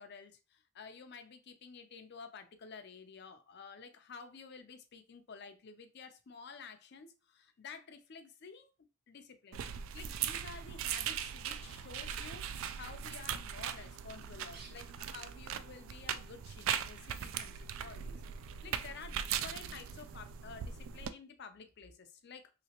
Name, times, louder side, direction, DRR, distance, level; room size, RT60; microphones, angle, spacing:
voice 1, 0.0-8.7 9.1-9.6 9.9-12.5 12.8-18.2 18.6-22.5, left 5 dB, 55° left, 0.5 m, -51 dB
sound 1, 9.5-21.1, right 9 dB, 70° right, 0.3 m, -40 dB
Bird, 11.7-20.1, right 3 dB, 50° right, 0.7 m, -65 dB
3.2 x 2.9 x 2.9 m
head